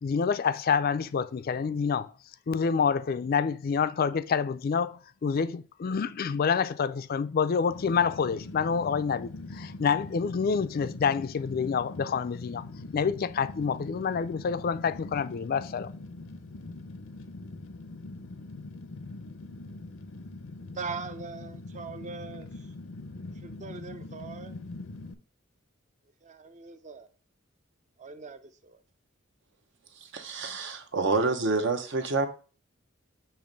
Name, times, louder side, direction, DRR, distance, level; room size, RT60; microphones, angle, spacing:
voice 1, 0.0-2.1 2.5-12.6 12.9-15.9, left 6 dB, 45° left, 0.4 m, -27 dB
Fire, 7.7-25.1, left 2 dB, 85° left, 0.6 m, -42 dB
voice 2, 20.8-22.7 23.3-24.6 26.2-27.1 28.0-28.8, right 4 dB, 35° right, 0.6 m, -41 dB
voice 3, 30.0-32.3, right 3 dB, 65° right, 0.9 m, -28 dB
6.9 x 3.0 x 5.2 m
head